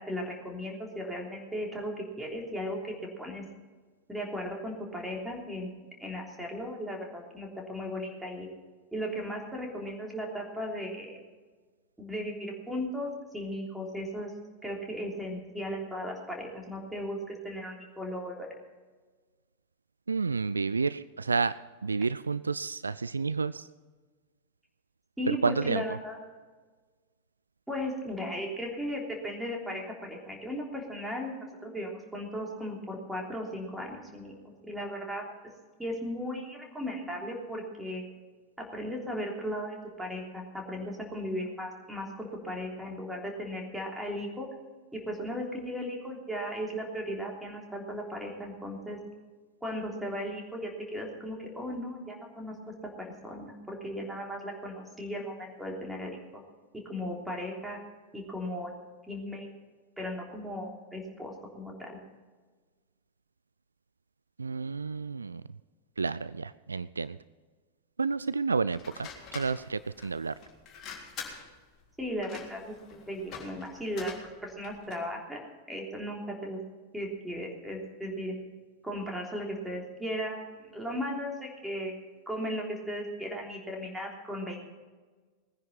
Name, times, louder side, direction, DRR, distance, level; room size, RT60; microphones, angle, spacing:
voice 1, 0.0-3.4 4.1-5.7 6.0-8.5 8.9-11.2 12.0-14.3 14.6-18.5 25.2-26.2 27.7-34.3 34.6-35.2 35.8-38.1 38.6-44.5 44.9-49.0 49.6-52.5 53.0-56.4 56.9-57.8 58.1-58.7 59.1-59.5 60.0-62.0 72.0-74.1 74.4-76.6 76.9-78.3 78.8-81.9 82.3-84.6, equal, 5° right, 0 dB, 3.3 m, -36 dB
voice 2, 20.1-21.5 21.8-23.7 25.3-26.0 64.4-65.4 66.0-67.2 68.0-70.3, right 4 dB, 75° right, 17 dB, 0.3 m, -30 dB
sound 1, 68.7-75.1, left 6 dB, 30° left, 3.6 m, -46 dB
19.5 x 10.0 x 5.5 m, 1.4 s
figure-of-eight pair, 90°, 0 cm